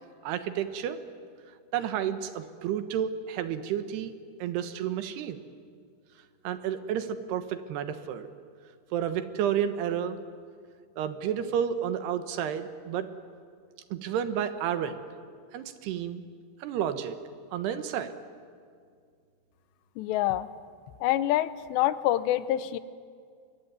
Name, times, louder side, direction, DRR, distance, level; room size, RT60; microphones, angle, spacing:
voice 1, 0.2-1.0 1.7-4.1 4.4-5.4 6.4-8.3 8.9-10.2 11.0-13.1 13.9-15.0 15.5-16.2 16.6-17.2 17.5-18.1, right 9 dB, 75° right, 10 dB, 3.1 m, -31 dB
voice 2, 20.0-20.5 21.0-22.8, left 13 dB, 80° left, 14 dB, 2.9 m, -26 dB
24.0 x 22.5 x 9.5 m, 2.1 s
omnidirectional pair, 5.0 m